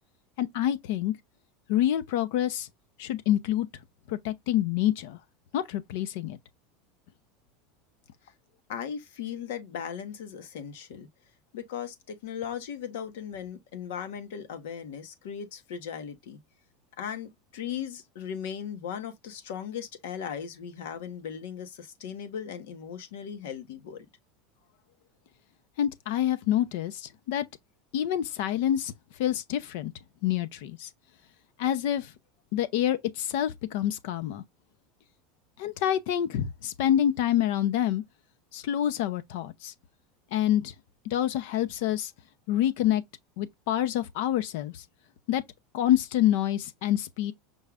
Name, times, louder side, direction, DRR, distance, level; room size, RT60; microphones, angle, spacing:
voice 1, 0.4-1.1 1.7-2.7 3.0-3.7 4.1-5.2 5.5-6.4 25.8-27.5 27.9-28.9 29.2-29.9 30.2-30.9 31.6-32.1 32.5-34.4 35.6-38.0 38.5-39.7 40.3-40.7 41.1-42.1 42.5-43.0 43.4-44.8 45.3-45.4 45.7-47.3, left 11 dB, 70° left, 0.6 m, -27 dB
voice 2, 8.7-11.1 11.5-16.4 17.0-24.1, left 8 dB, 85° left, 1.2 m, -37 dB
5.4 x 2.4 x 3.4 m
supercardioid pair, 155°, 0 cm